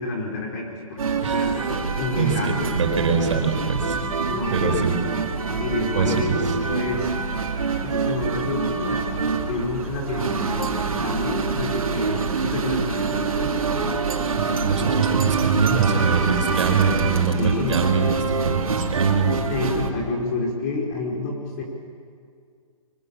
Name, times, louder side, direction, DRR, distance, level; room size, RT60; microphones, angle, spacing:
voice 1, 0.0-2.6 4.3-5.1 5.6-7.2 7.8-13.6 17.4-17.8 19.5-21.6, left 3 dB, 30° left, 0 dB, 5.0 m, -29 dB
sound 1, 1.0-19.9, right 5 dB, 85° right, 3.4 m, -25 dB
voice 2, 2.2-4.0 4.5-4.9 5.9-6.4 14.2-18.1 18.4-19.3, right 5 dB, 60° right, 4 dB, 4.9 m, -23 dB
29.0 x 24.5 x 7.3 m, 2.2 s
hypercardioid pair, 165°, 18 cm